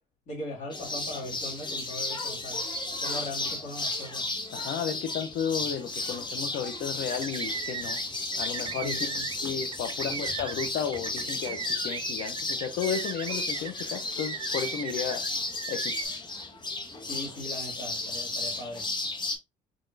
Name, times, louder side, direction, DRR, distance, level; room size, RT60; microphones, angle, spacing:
voice 1, 0.3-2.6 3.0-4.2 8.8-9.2 10.0-10.3 17.0-18.8, left 1 dB, 55° left, 1.9 m, -39 dB
sound 1, 0.7-19.4, left 2 dB, 25° left, 1.1 m, -34 dB
voice 2, 4.5-8.0 8.4-9.1 9.4-11.6 11.8-15.2 15.7-16.0, left 7 dB, 70° left, 0.7 m, -33 dB
sound 2, 5.3-11.7, right 1 dB, 15° right, 1.9 m, -52 dB
sound 3, 7.0-8.0 8.3-15.3 15.6-16.1, right 7 dB, 30° right, 0.4 m, -37 dB
4.0 x 3.0 x 2.6 m
cardioid pair, 110°, 17 cm